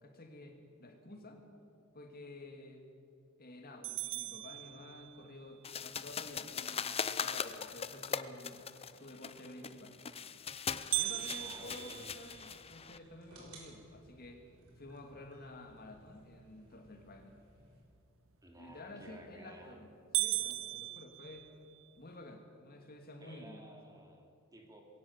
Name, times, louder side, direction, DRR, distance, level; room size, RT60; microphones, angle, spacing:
voice 1, 0.0-1.5 1.9-2.8 3.4-8.7 8.9-10.2 10.9-14.4 14.8-17.4 18.5-19.9 20.2-21.5 22.0-23.6, left 2 dB, 45° left, 4 dB, 2.4 m, -51 dB
sound 1, 3.8-5.4 10.9-13.1 13.6-13.7 14.2-14.3 14.9-15.3 18.9-19.3 19.7-19.8 20.1-21.9, right 17 dB, 65° right, 0.8 m, -38 dB
sound 2, 5.6-13.0, left 6 dB, 25° left, 0.6 m, -40 dB
sound 3, 10.8-17.8, right 1 dB, 80° right, 6.2 m, -61 dB
voice 2, 11.4-12.2 18.4-19.9 23.2-24.8, equal, 15° right, 2 dB, 2.7 m, -55 dB
21.5 x 18.0 x 7.3 m, 2.5 s
head